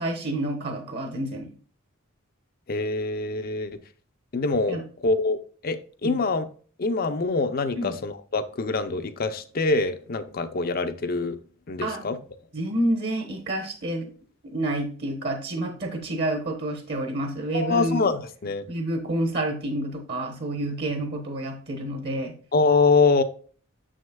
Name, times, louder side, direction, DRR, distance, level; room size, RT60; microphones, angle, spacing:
voice 1, 0.0-1.5 4.7-4.8 6.0-6.2 7.8-7.9 11.8-12.2 12.5-14.1 14.4-18.0 18.7-22.3, right 1 dB, 50° right, 1.1 m, -29 dB
voice 2, 2.7-3.8 4.3-6.5 6.8-11.4 11.7-12.2 17.5-18.6 22.5-23.2, left 3 dB, 45° left, 0.5 m, -24 dB
7.0 x 6.3 x 2.2 m
head